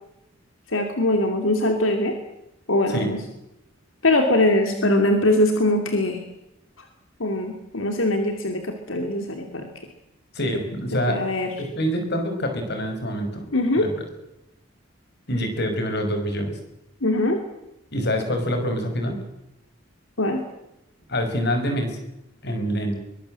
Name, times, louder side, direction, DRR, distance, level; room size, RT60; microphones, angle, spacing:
voice 1, 0.7-2.2 2.7-3.2 4.0-6.2 7.2-9.7 11.1-11.5 13.5-13.9 17.0-17.4 20.2-20.4, left 1 dB, 85° left, 5 dB, 2.9 m, -22 dB
voice 2, 10.3-11.2 11.6-13.5 13.8-13.9 15.3-16.5 17.9-19.2 21.1-22.0 22.4-23.0, equal, 55° left, 5 dB, 5.8 m, -25 dB
23.0 x 21.5 x 7.8 m, 0.87 s
head